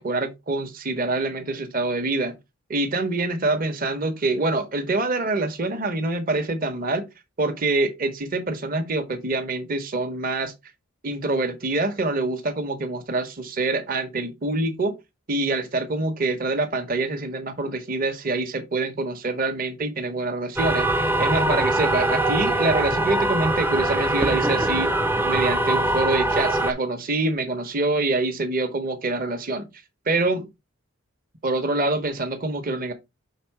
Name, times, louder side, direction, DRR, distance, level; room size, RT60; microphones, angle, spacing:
voice 1, 0.0-2.3 2.7-7.1 7.4-10.5 11.0-15.0 15.3-24.9 25.2-29.7 30.1-30.5 31.4-32.9, right 2 dB, 40° right, 0.9 m, -25 dB
sound 1, 20.6-26.7, right 1 dB, 10° right, 0.4 m, -22 dB
5.8 x 3.6 x 4.5 m
head